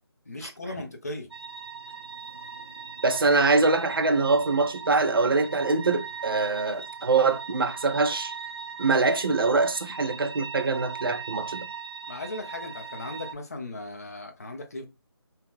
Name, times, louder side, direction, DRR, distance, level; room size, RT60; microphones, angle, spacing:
voice 1, 0.3-1.3 12.1-14.9, left 2 dB, 35° left, 0.5 m, -37 dB
sound 1, 1.3-13.3, right 5 dB, 85° right, 0.7 m, -39 dB
voice 2, 3.0-8.3 8.8-11.7, right 3 dB, 55° right, 0.5 m, -24 dB
2.7 x 2.4 x 3.6 m
figure-of-eight pair, 175°, 14 cm